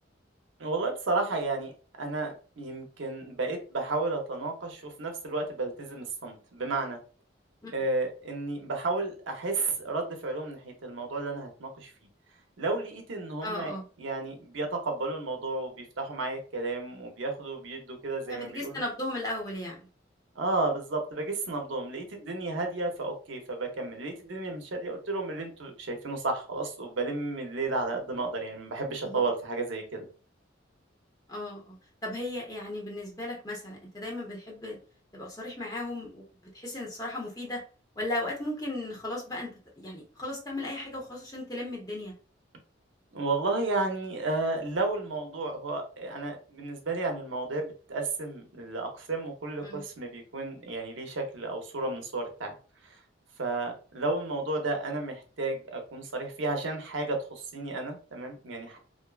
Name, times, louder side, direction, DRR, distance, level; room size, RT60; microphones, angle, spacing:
voice 1, 0.6-1.7 2.0-7.0 7.7-11.9 12.6-18.7 20.4-30.1 43.1-52.5 52.8-53.0 53.4-58.8, right 3 dB, 85° right, 3 dB, 0.6 m, -32 dB
voice 2, 13.4-13.9 18.3-19.9 29.0-29.3 31.3-34.8 35.1-36.2 36.5-37.6 38.0-42.1 49.6-49.8, left 1 dB, 20° left, -2 dB, 0.8 m, -36 dB
2.5 x 2.2 x 2.3 m, 0.37 s
head